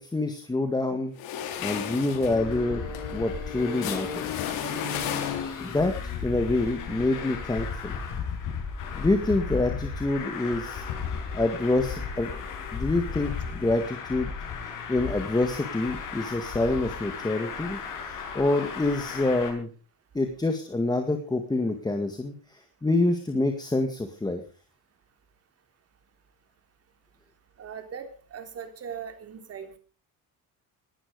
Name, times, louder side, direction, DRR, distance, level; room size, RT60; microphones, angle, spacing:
voice 1, 0.0-2.8 3.1-4.5 5.2-5.9 6.2-8.0 9.0-10.8 11.3-12.3 12.7-14.3 14.9-19.7 20.1-24.4, left 2 dB, 10° left, 5 dB, 1.9 m, -27 dB
sound 1, 1.2-5.8, left 9 dB, 85° left, 3.6 m, -34 dB
Traffic noise roadway noise, 2.3-19.5, left 5 dB, 65° left, 7.3 m, -35 dB
voice 2, 27.6-29.8, right 7 dB, 45° right, 6 dB, 3.6 m, -39 dB
19.5 x 12.0 x 5.3 m, 0.40 s
cardioid pair, 135°, 35 cm